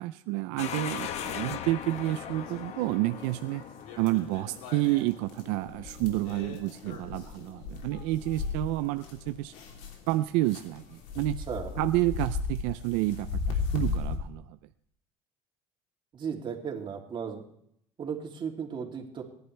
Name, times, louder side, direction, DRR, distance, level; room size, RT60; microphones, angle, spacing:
voice 1, 0.0-3.6 4.0-9.5 10.1-11.4 11.8-14.6, right 17 dB, 85° right, 10 dB, 0.5 m, -29 dB
sound 1, 0.6-11.3, left 9 dB, 60° left, 1.2 m, -42 dB
sound 2, 1.0-1.9 2.2-10.1 10.5-14.2, left 4 dB, 75° left, 3.2 m, -37 dB
voice 2, 11.5-11.8 16.1-17.4 18.0-19.2, right 6 dB, 40° right, 1 dB, 2.9 m, -35 dB
29.0 x 11.0 x 3.4 m, 0.72 s
supercardioid pair, 105°, 13 cm